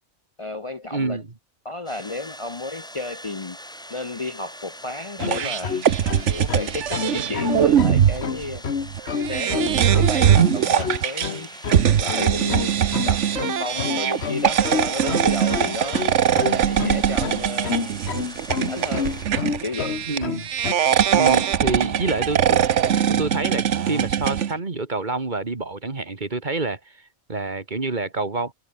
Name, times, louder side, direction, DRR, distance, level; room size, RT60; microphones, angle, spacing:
voice 1, 0.4-1.2 1.6-3.6 3.9-5.7 6.3-8.6 9.1-11.5 12.0-12.8 13.0-16.0 16.6-17.8 18.7-20.1, left 2 dB, 30° left, 0.8 m, -32 dB
voice 2, 0.9-1.3 20.1-20.5 21.1-22.6 22.9-28.5, right 3 dB, 40° right, 1.9 m, -27 dB
sound 1, 1.9-19.3, equal, 5° left, 1.6 m, -42 dB
sound 2, 5.2-20.7, left 6 dB, 60° left, 1.6 m, -28 dB
sound 3, 5.2-24.5, right 9 dB, 70° right, 1.2 m, -21 dB
omnidirectional pair, 1.3 m